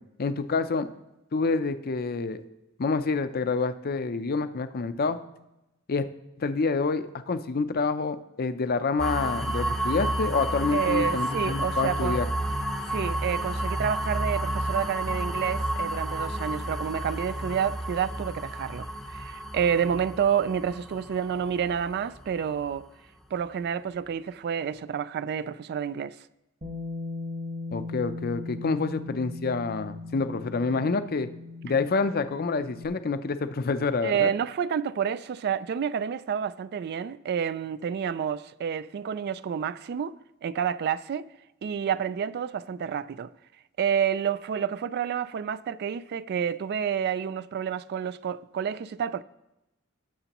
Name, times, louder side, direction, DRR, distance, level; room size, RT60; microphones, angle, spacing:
voice 1, 0.2-0.9 1.3-2.4 2.8-5.2 5.9-6.1 6.4-12.3 27.7-31.3 31.6-34.3, left 4 dB, 45° left, 0.5 m, -27 dB
sound 1, 9.0-22.8, right 1 dB, ahead, 0.7 m, -31 dB
voice 2, 10.7-12.2 12.9-18.9 19.1-22.9 23.3-26.2 34.0-40.2 40.4-41.3 41.6-43.3 43.8-49.2, right 8 dB, 50° right, 0.3 m, -29 dB
Bass guitar, 26.6-32.9, left 3 dB, 35° right, 1.2 m, -38 dB
18.0 x 6.8 x 3.0 m
head